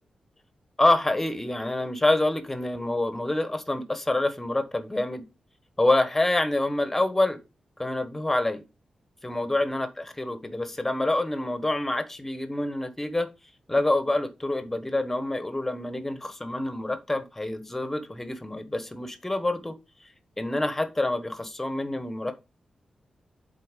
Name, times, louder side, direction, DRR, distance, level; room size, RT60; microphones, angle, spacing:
voice 1, 0.8-5.2 5.8-7.4 7.8-8.6 9.2-13.3 13.7-19.7 20.4-22.3, left 2 dB, 15° left, 1.2 m, -26 dB
7.7 x 4.1 x 5.2 m
wide cardioid pair, 105°, 2 cm